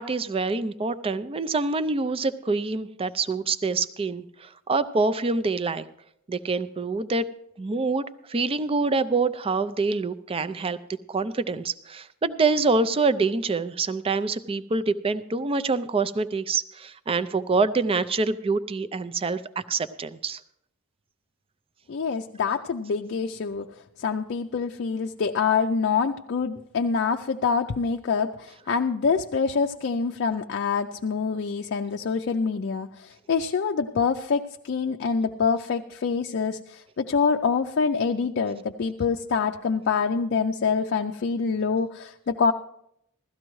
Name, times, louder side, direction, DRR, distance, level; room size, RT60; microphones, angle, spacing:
voice 1, 0.0-5.8 6.3-7.2 7.6-10.8 11.1-20.4, right 3 dB, 25° right, 13 dB, 0.4 m, -26 dB
voice 2, 21.9-23.7 24.0-42.5, left 5 dB, 55° left, 4 dB, 0.4 m, -26 dB
16.0 x 13.0 x 3.1 m, 0.76 s
head